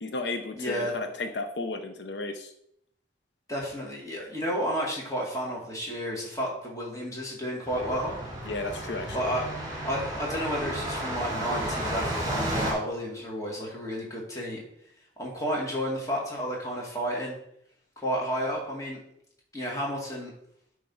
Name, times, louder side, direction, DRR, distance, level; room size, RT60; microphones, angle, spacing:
voice 1, 0.0-2.5 8.5-9.1, left 3 dB, 75° left, 6 dB, 0.7 m, -33 dB
voice 2, 0.6-0.9 3.5-8.2 9.1-9.5 9.8-14.6 15.2-17.4 18.0-19.0 19.5-20.3, equal, 20° left, -3 dB, 1.9 m, -31 dB
sound 1, 7.7-12.7, right 1 dB, 20° right, 2.3 m, -32 dB
8.5 x 3.4 x 5.5 m, 0.72 s
head